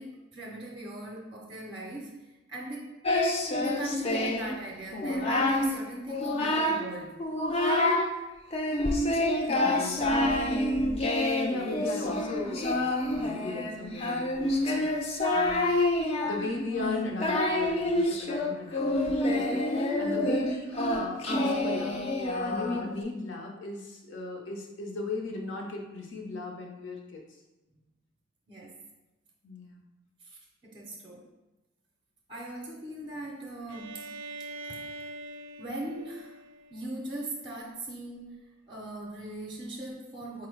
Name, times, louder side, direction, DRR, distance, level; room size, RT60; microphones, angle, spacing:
voice 1, 0.0-2.1 2.5-3.0 3.5-7.2 28.5-28.8 30.2-31.3 32.3-34.1 34.4-34.8 35.6-36.4 36.7-40.5, right 1 dB, 25° right, -1 dB, 0.5 m, -40 dB
Singing, 3.0-4.5 4.9-5.7 6.1-6.9 7.2-8.1 8.5-23.0, left 1 dB, 30° left, 0.4 m, -27 dB
voice 2, 9.5-10.4 11.4-15.7 16.2-19.7 20.0-22.0 22.4-27.2 29.4-29.8, left 3 dB, 75° left, 1 dB, 0.7 m, -37 dB
Bowed string instrument, 33.7-37.4, right 2 dB, 90° right, 0.4 m, -44 dB
4.7 x 2.0 x 4.5 m, 1.0 s
head